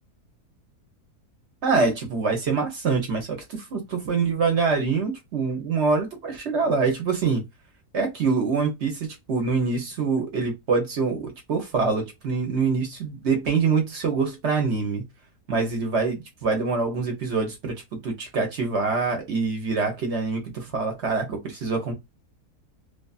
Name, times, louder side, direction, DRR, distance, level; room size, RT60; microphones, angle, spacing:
voice 1, 1.6-7.4 7.9-15.0 15.5-21.9, right 4 dB, 55° right, 0.9 m, -25 dB
2.6 x 2.3 x 2.3 m
omnidirectional pair, 1.7 m